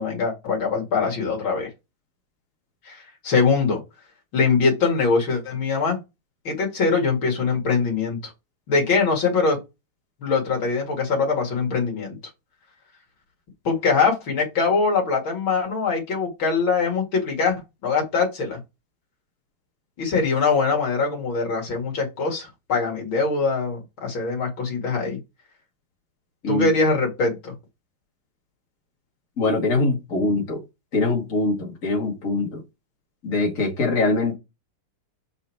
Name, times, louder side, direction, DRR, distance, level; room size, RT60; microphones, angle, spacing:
voice 1, 0.0-1.7 2.8-3.8 4.3-6.0 6.4-8.3 8.7-9.6 10.2-12.2 13.6-18.6 20.0-25.2 26.5-27.5, left 4 dB, 65° left, 2.9 m, -23 dB
voice 2, 29.4-30.6 30.9-32.6 33.2-34.4, left 2 dB, 40° left, 2.4 m, -23 dB
6.2 x 5.4 x 4.6 m
omnidirectional pair, 2.4 m